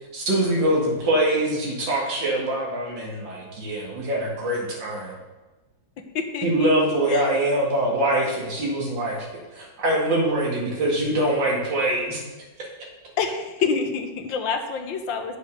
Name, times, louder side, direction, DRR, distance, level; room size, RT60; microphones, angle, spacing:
voice 1, 0.1-5.2 6.4-9.3 9.5-12.2, right 1 dB, 65° right, -2 dB, 2.7 m, -23 dB
voice 2, 6.1-6.7 7.1-7.3 13.2-15.4, left 5 dB, 75° left, 6 dB, 1.7 m, -27 dB
8.4 x 6.6 x 6.5 m, 1.2 s
omnidirectional pair, 2.2 m